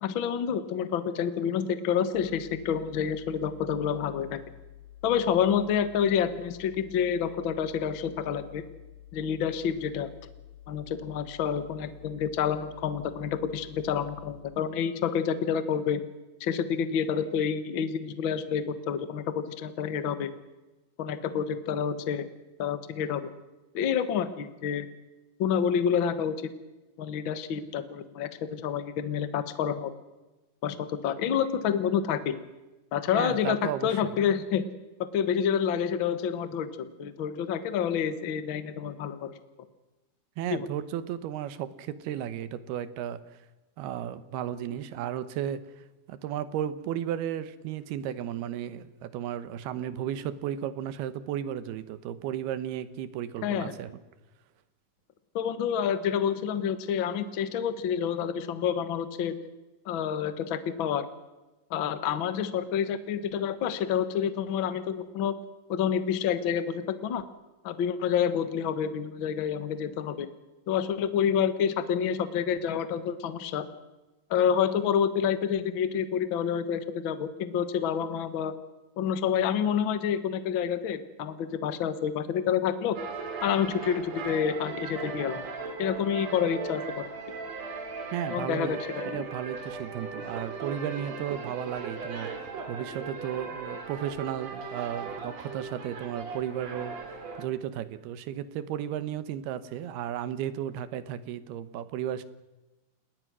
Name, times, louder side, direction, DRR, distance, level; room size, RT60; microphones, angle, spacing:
voice 1, 0.0-4.4 5.0-8.6 9.1-10.1 10.7-16.0 16.4-20.3 21.0-22.2 22.6-23.2 23.7-24.9 25.4-26.3 27.0-29.9 30.6-32.4 32.9-34.6 35.0-39.3 40.5-40.7 53.4-53.7 55.3-59.3 59.8-61.1 61.7-65.3 65.7-67.2 67.6-70.3 70.7-73.7 74.3-78.5 79.0-83.0 83.4-85.5 85.8-87.1 88.3-89.3, left 8 dB, 75° left, 11 dB, 1.1 m, -28 dB
sound 1, 2.1-14.4, left 11 dB, 40° left, 4.6 m, -50 dB
voice 2, 33.1-34.2 40.4-43.2 43.8-53.9 88.1-88.8 89.1-92.3 92.7-102.2, right 10 dB, 85° right, 13 dB, 3.0 m, -34 dB
sound 2, 83.0-97.5, right 4 dB, 50° right, 3.3 m, -38 dB
30.0 x 19.0 x 6.2 m, 1.1 s
omnidirectional pair, 4.5 m